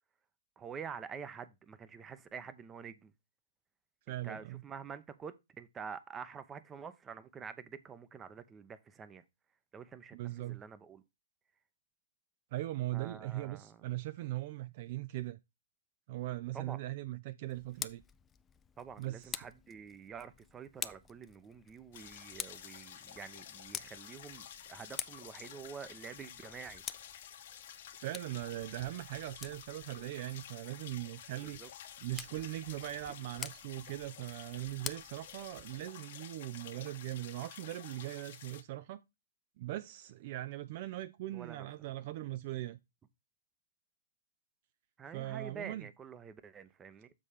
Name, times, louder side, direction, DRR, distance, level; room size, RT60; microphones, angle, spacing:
voice 1, 0.6-3.1 4.2-9.2 9.7-11.0 12.9-13.8 16.5-16.8 18.8-26.8 31.6-31.7 41.3-41.7 45.0-47.1, right 6 dB, 15° right, 0.7 m, -47 dB
voice 2, 4.1-4.6 10.1-10.6 12.5-15.4 16.1-18.0 19.0-19.4 27.9-31.6 32.0-39.0 39.6-42.8 45.1-45.9, right 16 dB, 45° right, 0.4 m, -40 dB
Tick, 17.5-35.9, left 7 dB, 15° left, 0.4 m, -49 dB
sound 1, 21.9-38.6, left 9 dB, 50° left, 1.2 m, -51 dB
7.5 x 4.2 x 4.9 m
figure-of-eight pair, 120°, 0 cm